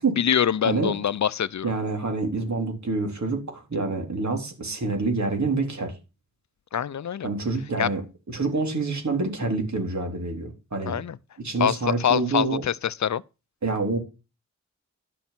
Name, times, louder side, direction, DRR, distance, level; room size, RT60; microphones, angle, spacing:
voice 1, 0.2-1.7 6.7-7.3 7.8-7.9 10.9-11.2 11.6-13.2, left 9 dB, 70° left, 0.5 m, -24 dB
voice 2, 1.6-5.9 7.2-8.0 8.3-11.0 11.4-12.6 13.6-14.0, right 3 dB, 70° right, 3.8 m, -27 dB
11.5 x 6.9 x 5.9 m
cardioid pair, 55°, 30 cm